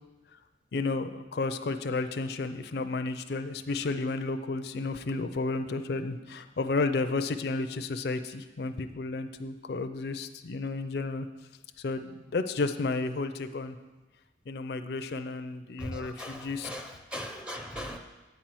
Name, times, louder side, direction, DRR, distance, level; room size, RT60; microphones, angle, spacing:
voice 1, 0.7-11.3 11.8-13.8 14.5-16.8, left 3 dB, 60° left, 8 dB, 0.4 m, -32 dB
voice 2, 15.8-16.4 16.6-18.0, equal, 5° right, 3 dB, 0.5 m, -38 dB
9.3 x 4.3 x 7.5 m, 1.1 s
head